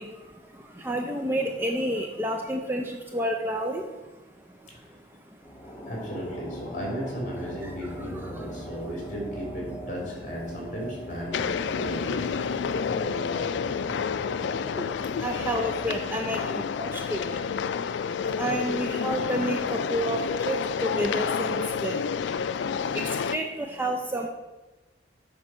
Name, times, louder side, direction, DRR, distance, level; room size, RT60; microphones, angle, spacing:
voice 1, 0.0-4.1 4.4-5.1 5.3-5.4 5.7-5.9 8.1-8.5 12.6-12.8 13.9-14.0 14.3-17.7 18.0-24.3, right 1 dB, 10° right, 2 dB, 0.5 m, -31 dB
sound 1, 5.4-18.0, equal, 15° left, 0.9 m, -41 dB
voice 2, 5.9-12.2 12.6-13.4, equal, 40° left, -2 dB, 2.8 m, -36 dB
sound 2, 11.3-23.4, left 6 dB, 75° left, 0.3 m, -29 dB
7.5 x 4.5 x 6.1 m, 1.1 s
head